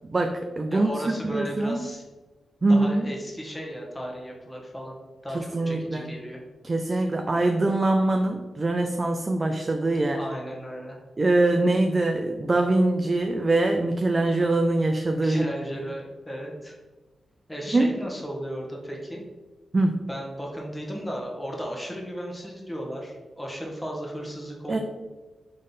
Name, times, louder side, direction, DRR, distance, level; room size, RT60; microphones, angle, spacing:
voice 1, 0.1-1.8 2.6-3.1 5.3-6.1 6.6-10.2 11.2-15.4 17.7-18.0 19.7-20.0 24.7-24.8, right 2 dB, 35° right, 4 dB, 0.4 m, -23 dB
voice 2, 0.7-2.0 2.7-4.9 5.2-6.4 6.9-7.0 10.2-11.0 15.1-16.8 17.5-19.2 20.1-24.8, equal, 15° left, -1 dB, 1.2 m, -35 dB
3.7 x 3.2 x 4.0 m, 1.2 s
cardioid pair, 65°, 0 cm